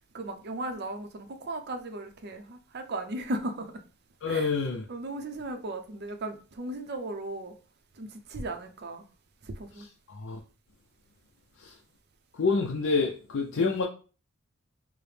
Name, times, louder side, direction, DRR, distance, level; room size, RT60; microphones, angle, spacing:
voice 1, 0.1-3.8 4.3-4.5 4.9-7.5 8.0-9.1 9.4-9.9 13.6-13.7, right 2 dB, 50° right, 0.6 m, -36 dB
voice 2, 4.2-4.8 10.1-10.4 11.6-11.8 12.3-13.8, left 4 dB, 60° left, 0.5 m, -27 dB
4.8 x 2.0 x 3.2 m
head